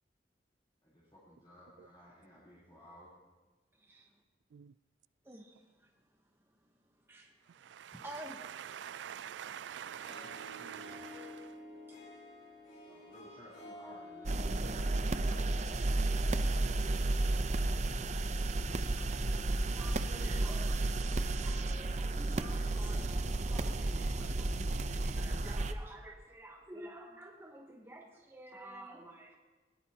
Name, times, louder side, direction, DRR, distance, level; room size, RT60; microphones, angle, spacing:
voice 1, 0.8-3.1 9.4-10.9 12.9-15.6, equal, 25° left, -9 dB, 3.7 m, -57 dB
voice 2, 3.8-4.1 5.2-5.9 7.0-7.3 7.9-9.0 11.9-12.0 18.2-29.4, right 1 dB, 15° right, 1 dB, 1.0 m, -51 dB
voice 3, 7.6-11.5 14.6-15.1 20.2-20.4, right 9 dB, 90° right, 20 dB, 0.4 m, -46 dB
Harp, 9.9-17.3, left 1 dB, 50° left, 5.5 m, -52 dB
sound 1, 14.3-25.7, right 2 dB, 40° right, 0.6 m, -32 dB
20.0 x 18.0 x 2.9 m, 1.3 s
head